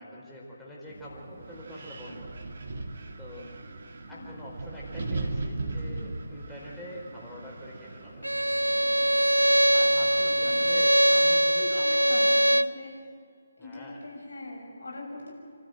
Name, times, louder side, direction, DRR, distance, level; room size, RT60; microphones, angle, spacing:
voice 1, 0.0-2.3 3.2-3.5 4.1-8.3 9.7-12.2 13.6-14.0, equal, 5° left, -6 dB, 4.6 m, -44 dB
Wind, 0.9-10.8, right 2 dB, 45° right, 2.0 m, -39 dB
voice 2, 4.1-4.4 5.7-6.1 10.4-10.8 11.1-11.2 11.5-13.0 13.6-15.3, left 2 dB, 65° left, 0 dB, 7.1 m, -42 dB
Bowed string instrument, 8.2-12.8, right 1 dB, 85° right, 0.5 m, -22 dB
27.5 x 13.0 x 9.2 m, 2.2 s
figure-of-eight pair, 145°, 0 cm